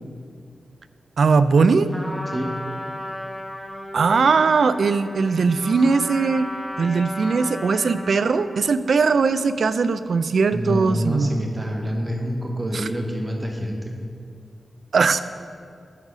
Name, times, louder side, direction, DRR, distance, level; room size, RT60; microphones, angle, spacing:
voice 1, 1.2-1.9 3.9-6.5 6.8-11.3 12.7-12.9 14.9-15.2, right 4 dB, 70° right, 13 dB, 0.3 m, -19 dB
Trumpet, 1.9-8.5, left 1 dB, 5° left, 1.0 m, -35 dB
voice 2, 10.5-14.0, equal, 25° right, 1 dB, 0.8 m, -27 dB
11.0 x 4.1 x 5.0 m, 2.3 s
wide cardioid pair, 90°, 0 cm